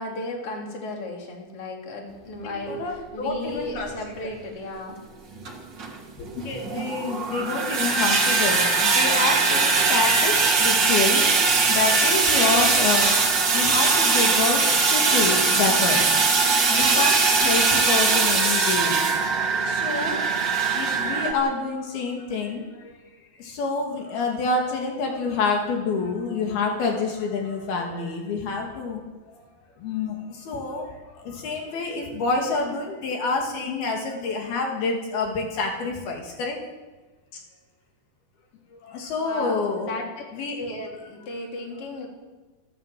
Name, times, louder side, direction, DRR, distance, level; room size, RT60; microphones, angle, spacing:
voice 1, 0.0-5.0 39.2-39.6 39.8-40.1 40.6-42.1, left 2 dB, 35° left, 0 dB, 4.2 m, -34 dB
voice 2, 2.4-3.9 4.2-4.3 6.5-11.3 11.7-13.2 13.5-16.1 16.7-19.0 19.6-23.0 23.4-29.0 29.3-29.4 29.8-36.6 38.7-39.9 40.3-40.6, left 4 dB, 75° left, 1 dB, 4.3 m, -27 dB
sound 1, 3.5-3.6 4.3-4.4 5.4-21.3, right 4 dB, 35° right, 2.5 m, -21 dB
28.5 x 13.0 x 7.6 m, 1.2 s
omnidirectional pair, 4.5 m